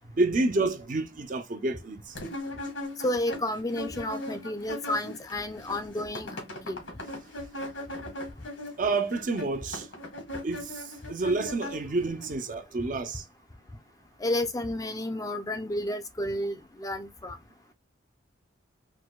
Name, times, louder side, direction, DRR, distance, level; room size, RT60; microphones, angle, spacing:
voice 1, 0.1-2.1 8.8-9.9 10.4-13.2, right 3 dB, 45° right, 0.6 m, -29 dB
sound 1, 2.2-5.3 5.6-12.3, left 1 dB, 85° left, 1.5 m, -39 dB
voice 2, 3.0-6.8 14.2-17.4, left 1 dB, 20° left, 0.5 m, -31 dB
4.7 x 2.2 x 2.2 m
head